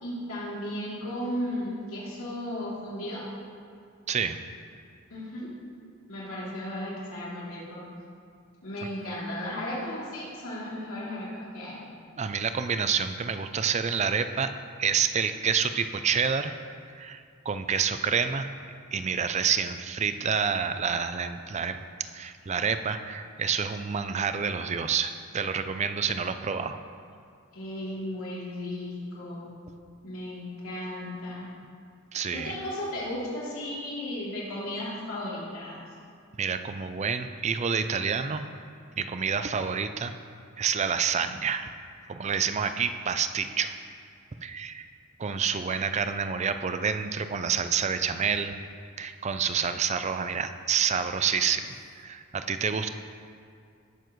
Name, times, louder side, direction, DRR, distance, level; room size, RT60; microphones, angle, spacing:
voice 1, 0.0-3.3 5.1-5.5 6.1-7.8 8.6-11.8 27.5-29.5 30.0-31.5 32.3-35.8, left 1 dB, 85° left, -7 dB, 3.0 m, -35 dB
voice 2, 4.1-4.4 12.2-14.5 14.8-16.5 16.9-18.5 18.9-26.8 32.1-32.5 36.4-38.5 39.0-40.1 40.6-41.7 42.1-43.8 44.4-44.9 45.2-48.6 49.0-52.9, right 6 dB, 30° right, 10 dB, 0.4 m, -28 dB
18.5 x 7.0 x 3.1 m, 2.3 s
head